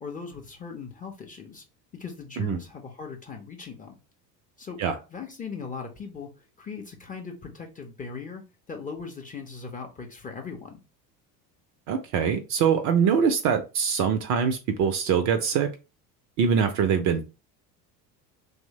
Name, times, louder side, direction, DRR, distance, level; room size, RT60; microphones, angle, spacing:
voice 1, 0.0-1.6 2.0-4.0 4.6-4.8 5.1-6.3 6.6-8.4 8.7-10.8, left 5 dB, 15° left, 0.5 m, -39 dB
voice 2, 11.9-15.7 16.4-17.2, right 7 dB, 40° right, 0.4 m, -23 dB
2.9 x 2.0 x 2.7 m
hypercardioid pair, 70°, 50 cm